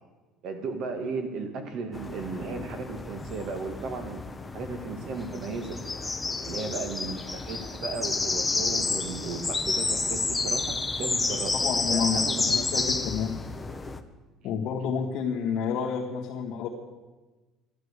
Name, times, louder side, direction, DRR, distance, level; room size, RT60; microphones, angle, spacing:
voice 1, 0.4-4.2 4.5-5.8 6.4-11.5 11.9-12.9, right 4 dB, 50° right, 6 dB, 2.0 m, -35 dB
sound 1, 1.9-14.0, left 3 dB, 10° left, 0.7 m, -30 dB
voice 2, 11.6-12.2 12.5-13.4 14.4-16.7, left 7 dB, 55° left, -3 dB, 1.8 m, -29 dB
12.0 x 12.0 x 8.2 m, 1.2 s
cardioid pair, 165°, 0 cm